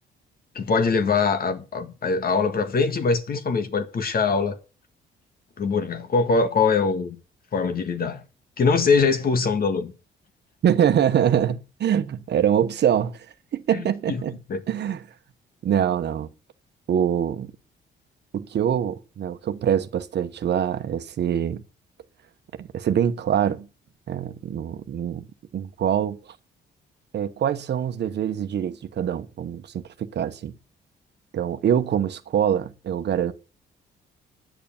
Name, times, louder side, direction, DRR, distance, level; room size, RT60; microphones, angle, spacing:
voice 1, 0.5-4.6 5.6-7.1 7.5-8.2 8.6-9.9 13.7-14.2 14.5-14.6, left 4 dB, 50° left, 1.7 m, -23 dB
voice 2, 10.6-13.3 13.5-14.4 14.7-15.0 15.6-16.3 16.9-17.5 18.3-21.6 22.6-23.7 24.1-25.3 25.5-26.2 27.1-30.5 31.3-33.3, right 9 dB, 60° right, 1.1 m, -24 dB
10.0 x 6.8 x 7.2 m
cardioid pair, 90°, 20 cm